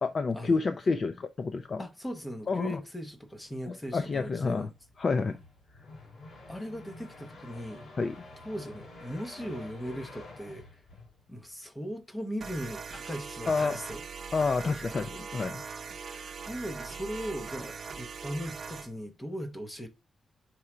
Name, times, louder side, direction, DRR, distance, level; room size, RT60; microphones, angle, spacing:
voice 1, 0.0-1.8 2.5-2.8 3.7-4.7 5.0-5.4 8.0-8.2 13.5-13.7 14.3-15.6, left 4 dB, 30° left, 0.4 m, -29 dB
voice 2, 1.8-4.7 6.5-7.9 8.4-10.8 11.3-14.0 15.9-19.9, equal, 10° left, 0.9 m, -39 dB
sound 1, 4.2-11.5, left 2 dB, 55° left, 4.2 m, -49 dB
sound 2, 12.4-18.9, right 5 dB, 40° right, 0.8 m, -41 dB
4.7 x 4.3 x 4.8 m
wide cardioid pair, 180°, 0 cm